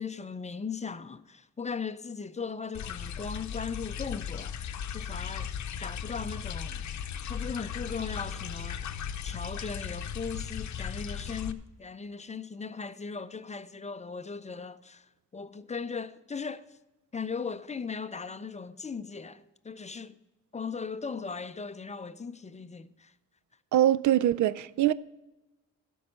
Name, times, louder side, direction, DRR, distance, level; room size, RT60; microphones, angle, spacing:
voice 1, 0.0-4.6 4.9-5.5 5.8-6.8 7.3-8.8 9.2-16.8 17.1-20.1 20.5-23.1, left 5 dB, 25° left, 0.5 m, -38 dB
sound 1, 2.7-11.5, left 8 dB, 70° left, 0.7 m, -37 dB
voice 2, 23.7-24.9, right 12 dB, 75° right, 0.5 m, -23 dB
12.5 x 5.4 x 7.5 m
wide cardioid pair, 120°, 30 cm